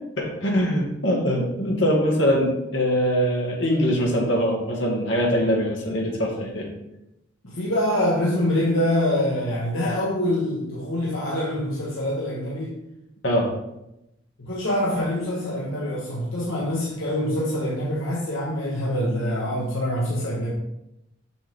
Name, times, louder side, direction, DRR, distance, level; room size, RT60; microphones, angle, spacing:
voice 1, 0.2-6.7 13.2-13.5, equal, 65° left, -2 dB, 2.0 m, -22 dB
voice 2, 7.5-12.8 14.4-20.5, left 1 dB, 80° left, -5 dB, 1.3 m, -25 dB
7.1 x 6.1 x 3.6 m, 0.88 s
head